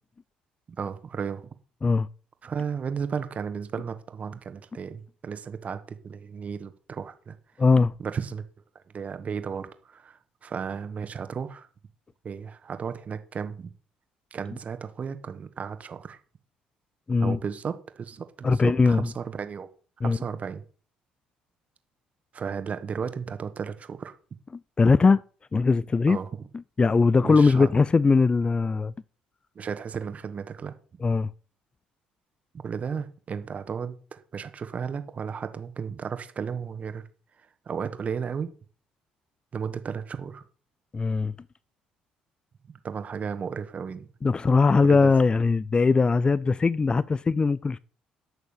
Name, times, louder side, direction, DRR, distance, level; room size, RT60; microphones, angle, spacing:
voice 1, 0.8-1.5 2.4-7.4 8.0-8.4 8.9-11.7 12.2-13.7 14.3-16.2 17.2-19.7 20.0-20.6 22.3-24.1 26.1-26.3 27.2-27.7 29.6-30.7 32.5-37.0 37.7-38.5 39.5-40.4 42.8-44.1 44.9-45.1, right 6 dB, 45° right, 1.7 m, -34 dB
voice 2, 7.6-7.9 17.1-17.4 18.4-19.1 20.0-20.2 24.8-25.2 25.5-26.2 26.8-28.9 31.0-31.3 40.9-41.3 44.2-47.8, left 4 dB, 25° left, 0.5 m, -20 dB
11.0 x 6.5 x 6.7 m
hypercardioid pair, 55°, 3 cm